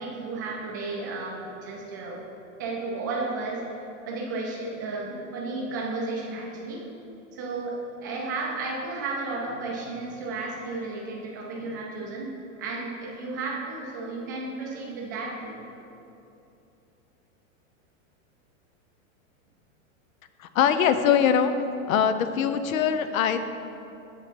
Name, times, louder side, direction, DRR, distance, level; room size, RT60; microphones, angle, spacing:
voice 1, 0.0-2.2 2.6-3.6 4.1-6.8 7.3-12.3 12.6-15.6, right 3 dB, 15° right, -2 dB, 0.3 m, -33 dB
voice 2, 20.4-21.5 21.9-23.4, left 8 dB, 80° left, 10 dB, 0.7 m, -22 dB
6.9 x 6.7 x 4.4 m, 2.8 s
supercardioid pair, 175°, 40 cm